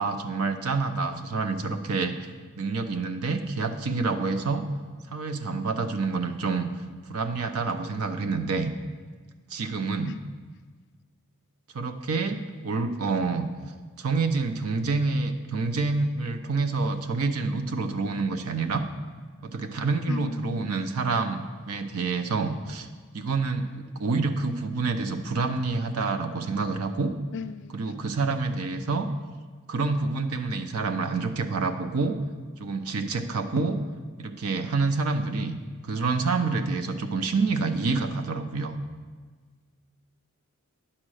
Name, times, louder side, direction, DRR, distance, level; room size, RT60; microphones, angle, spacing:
voice 1, 0.0-2.1 2.6-4.7 5.1-6.7 7.1-8.7 9.5-10.2 11.7-13.5 14.0-18.8 19.4-22.9 23.1-27.1 27.7-29.1 29.7-32.2 32.6-33.8 34.2-35.6 35.8-38.8, right 4 dB, 85° right, 8 dB, 0.7 m, -27 dB
voice 2, 20.1-20.8 27.3-27.7, left 5 dB, 55° left, 12 dB, 0.4 m, -37 dB
9.9 x 4.3 x 6.3 m, 1.5 s
head